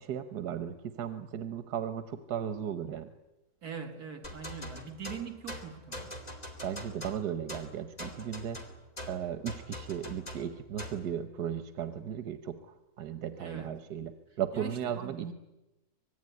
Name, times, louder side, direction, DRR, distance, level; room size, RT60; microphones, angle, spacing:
voice 1, 0.0-3.1 6.6-8.6 9.1-14.1 14.4-15.3, right 9 dB, 90° right, 1.6 m, -36 dB
voice 2, 3.6-6.2 13.4-13.7 14.5-15.3, right 7 dB, 75° right, 2.6 m, -42 dB
sound 1, 4.2-11.1, left 1 dB, 25° left, 3.0 m, -43 dB
25.0 x 20.5 x 9.7 m
omnidirectional pair, 1.7 m